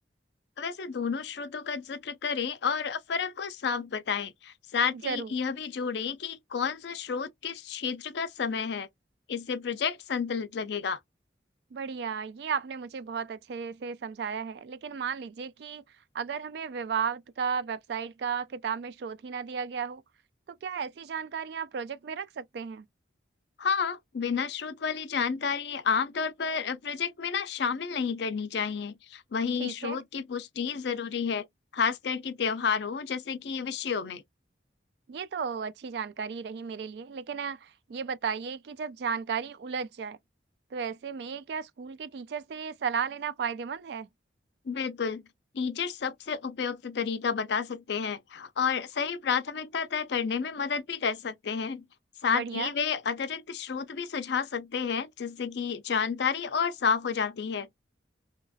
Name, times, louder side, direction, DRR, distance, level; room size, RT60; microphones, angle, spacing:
voice 1, 0.6-8.9 9.3-11.0 23.6-31.5 31.7-34.2 44.7-45.2 45.5-51.8 52.2-57.7, left 6 dB, 65° left, 0.4 m, -31 dB
voice 2, 4.9-5.3 11.7-15.8 16.1-20.0 20.5-22.9 29.6-30.0 35.1-40.2 40.7-44.1 52.3-52.7, right 6 dB, 60° right, 0.3 m, -34 dB
2.8 x 2.4 x 2.6 m
head